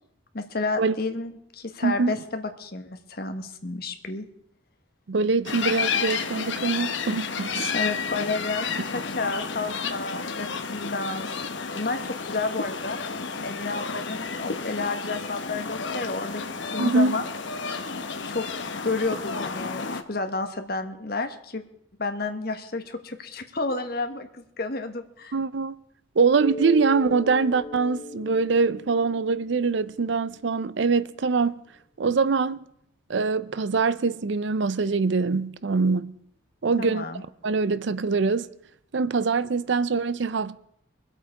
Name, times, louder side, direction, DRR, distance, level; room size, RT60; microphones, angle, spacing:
voice 1, 0.3-4.3 7.7-11.3 11.7-12.0 12.2-13.0 13.4-17.2 18.3-18.4 18.8-21.6 22.0-25.3 36.8-37.2, left 3 dB, 50° left, 1.3 m, -31 dB
voice 2, 1.8-2.2 5.1-7.7 16.8-17.2 25.3-25.8 26.2-31.6 32.0-32.6 33.1-36.1 36.6-37.0 37.4-38.5 38.9-40.6, right 4 dB, 65° right, 0.5 m, -23 dB
sound 1, 5.5-20.0, left 5 dB, 65° left, 1.0 m, -31 dB
Mallet percussion, 26.4-30.8, left 2 dB, 30° left, 0.9 m, -38 dB
23.5 x 8.2 x 4.7 m
head